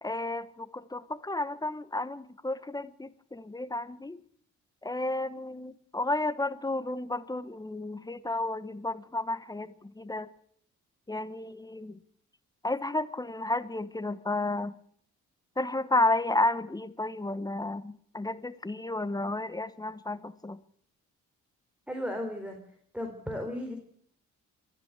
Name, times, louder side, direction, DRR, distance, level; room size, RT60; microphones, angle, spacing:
voice 1, 0.0-4.2 4.8-10.3 11.1-12.0 12.6-14.7 15.6-20.6, left 2 dB, 15° left, 13 dB, 1.3 m, -32 dB
voice 2, 21.9-22.6 22.9-23.8, left 1 dB, 5° right, 4 dB, 4.1 m, -35 dB
22.0 x 14.0 x 8.2 m, 0.64 s
cardioid pair, 90°, 30 cm